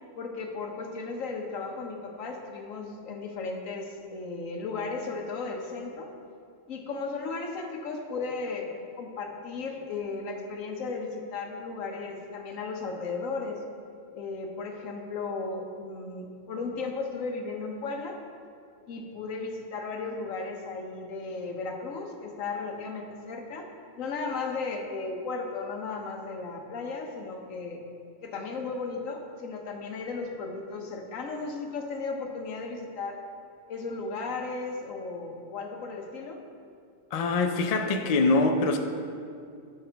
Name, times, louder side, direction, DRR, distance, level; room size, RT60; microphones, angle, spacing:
voice 1, 0.2-6.1 6.7-8.7 9.0-13.6 14.1-18.2 18.9-23.7 24.0-27.8 28.2-33.2 33.7-36.4, left 4 dB, 85° left, 2 dB, 1.3 m, -35 dB
voice 2, 37.1-38.8, left 3 dB, 45° left, 4 dB, 0.5 m, -24 dB
13.0 x 5.5 x 3.4 m, 2.4 s
omnidirectional pair, 1.3 m